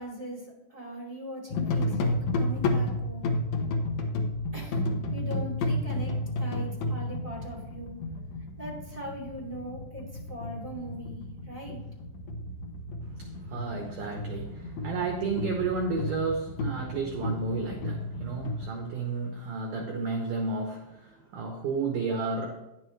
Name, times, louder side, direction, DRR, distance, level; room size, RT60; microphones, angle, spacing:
voice 1, 0.0-3.3 4.5-4.8 5.1-7.9 8.6-11.2 11.4-11.8, right 1 dB, 15° right, -5 dB, 1.5 m, -40 dB
sound 1, 1.5-18.7, left 1 dB, 70° left, 2.0 m, -32 dB
voice 2, 13.2-22.6, right 4 dB, 85° right, 3 dB, 1.8 m, -32 dB
10.0 x 9.0 x 3.1 m, 0.95 s
omnidirectional pair, 5.0 m